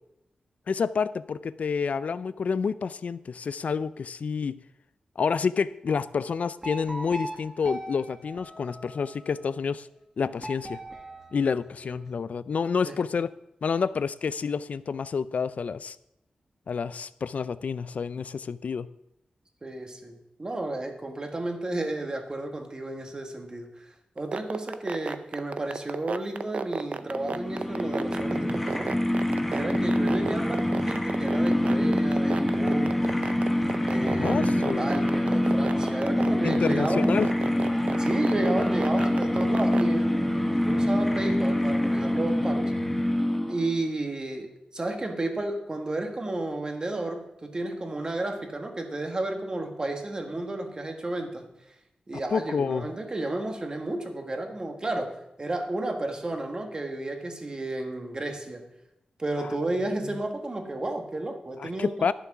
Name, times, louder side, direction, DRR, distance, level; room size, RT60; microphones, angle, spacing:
voice 1, 0.7-4.6 5.2-9.9 10.2-10.8 11.3-13.3 13.6-16.0 16.7-18.9 34.2-35.1 36.4-37.3 52.3-52.9 61.6-62.1, left 5 dB, 65° left, 16 dB, 0.4 m, -29 dB
sound 1, 6.6-9.3 10.4-12.2, right 1 dB, 15° right, 1.4 m, -40 dB
voice 2, 19.6-29.0 29.5-33.1 33.8-37.2 38.0-42.7 43.5-51.5 52.1-58.7 59.2-62.1, right 2 dB, 30° right, 4 dB, 1.6 m, -32 dB
sound 2, 24.2-39.8, right 5 dB, 55° right, 0.5 m, -31 dB
sound 3, 27.1-43.8, left 1 dB, 5° left, 1.2 m, -25 dB
11.5 x 7.0 x 6.0 m, 0.87 s
wide cardioid pair, 115°, 3 cm